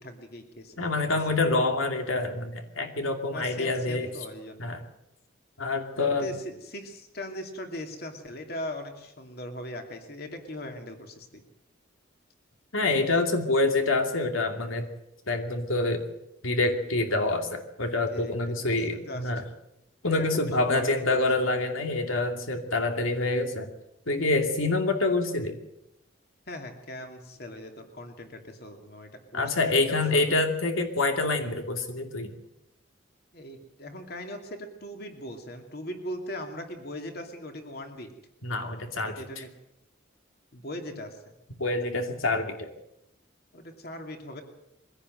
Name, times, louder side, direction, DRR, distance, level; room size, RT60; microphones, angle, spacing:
voice 1, 0.0-0.9 3.3-4.7 6.0-11.4 18.1-19.3 20.1-21.5 26.5-30.2 33.3-38.1 39.0-39.5 40.5-41.2 43.5-44.4, left 1 dB, 50° left, 4 dB, 2.7 m, -40 dB
voice 2, 0.8-4.1 4.6-4.8 5.6-6.3 12.7-14.9 15.3-16.0 16.4-19.4 20.0-23.7 24.1-25.6 29.3-32.3 38.4-39.4 41.6-42.7, left 2 dB, 85° left, 5 dB, 2.6 m, -26 dB
23.0 x 16.5 x 7.8 m, 0.86 s
head